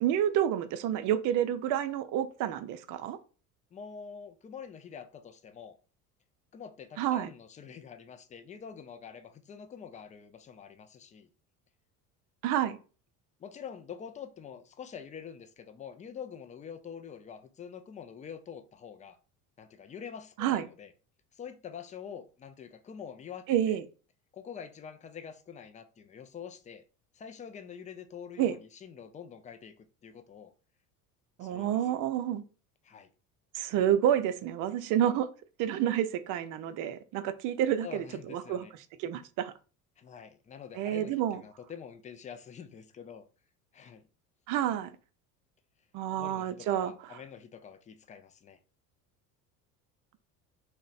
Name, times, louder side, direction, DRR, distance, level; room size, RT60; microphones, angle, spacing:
voice 1, 0.0-3.2 7.0-7.3 12.4-12.8 20.4-20.7 23.5-23.8 28.4-28.6 31.4-32.4 33.5-35.3 35.6-38.7 39.0-39.5 40.8-41.4 44.5-44.9 45.9-47.2, right 10 dB, 45° right, 0.5 m, -29 dB
voice 2, 3.7-5.8 6.5-11.3 13.4-19.2 19.6-20.9 21.3-23.8 24.3-26.8 27.1-30.5 31.4-32.0 32.8-33.1 37.8-38.7 40.0-43.2 43.7-44.1 46.1-48.6, left 7 dB, 20° left, 0.3 m, -46 dB
3.0 x 2.1 x 3.9 m
hypercardioid pair, 75°, 45 cm